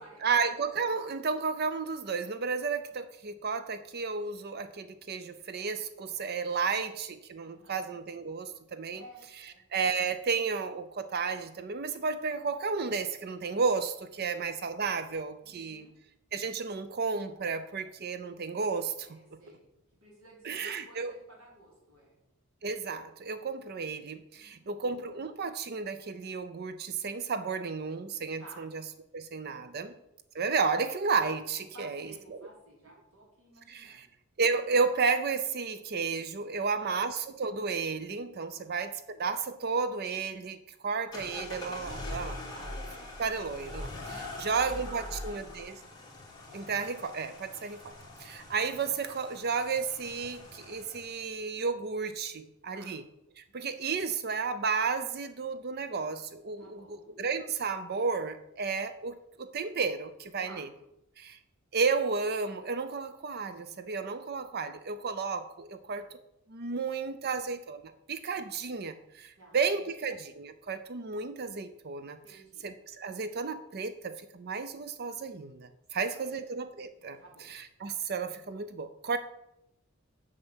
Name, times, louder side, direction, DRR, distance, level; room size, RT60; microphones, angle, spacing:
voice 1, 0.2-9.0 9.7-15.9 16.3-19.4 20.4-21.1 22.6-28.8 29.1-29.9 30.3-32.1 33.7-34.1 34.4-42.4 43.2-45.8 46.5-47.9 48.2-53.0 53.4-60.7 61.2-61.4 61.7-66.1 66.5-72.2 72.6-77.2 77.5-79.2, right 5 dB, 45° right, 11 dB, 0.5 m, -32 dB
voice 2, 7.4-7.8 8.9-9.7 14.0-14.4 15.4-16.0 19.0-19.7 19.9-22.2 24.3-24.8 28.4-28.7 29.4-30.0 31.5-34.1 36.6-37.0 38.6-39.0 42.5-42.7 44.3-45.6 52.7-53.0 53.5-53.8 56.6-57.2 60.3-60.8 65.8-66.1 69.3-69.9 72.2-72.7 75.9-76.4 76.7-77.5, right 1 dB, 75° right, -2 dB, 4.1 m, -55 dB
sound 1, 41.1-51.3, left 1 dB, 20° left, 2.6 m, -43 dB
7.8 x 6.5 x 7.3 m, 0.84 s
head